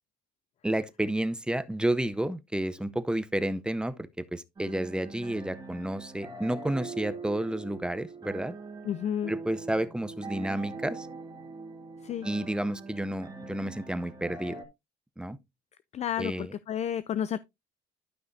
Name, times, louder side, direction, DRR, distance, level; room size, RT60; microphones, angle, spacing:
voice 1, 0.6-8.5 9.3-11.1 12.2-14.6 15.2-15.4 16.2-16.5, right 1 dB, 5° right, 0.6 m, -31 dB
sound 1, 4.6-14.6, right 3 dB, 25° right, 1.9 m, -42 dB
voice 2, 8.8-9.3 12.0-12.3 15.9-17.4, left 9 dB, 40° left, 0.4 m, -31 dB
12.0 x 5.6 x 2.6 m
cardioid pair, 110°, 17 cm